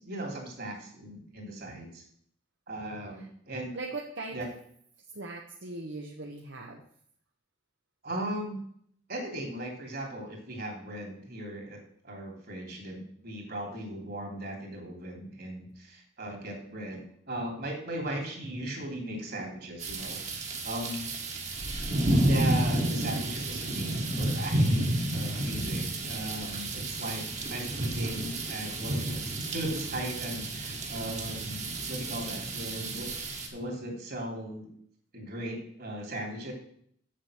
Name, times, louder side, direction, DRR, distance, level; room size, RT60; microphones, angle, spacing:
voice 1, 0.0-2.0 2.7-3.7 4.3-4.5 8.0-8.6 9.1-21.1 22.1-24.8 25.1-27.2 27.5-33.1 33.5-34.7 35.1-36.5, right 1 dB, 55° right, 1 dB, 3.1 m, -38 dB
voice 2, 3.7-4.5 5.1-6.8, right 2 dB, 75° right, 0 dB, 1.1 m, -39 dB
sound 1, 19.8-33.5, right 1 dB, 40° right, 1.6 m, -31 dB
7.5 x 7.4 x 6.2 m, 0.63 s
head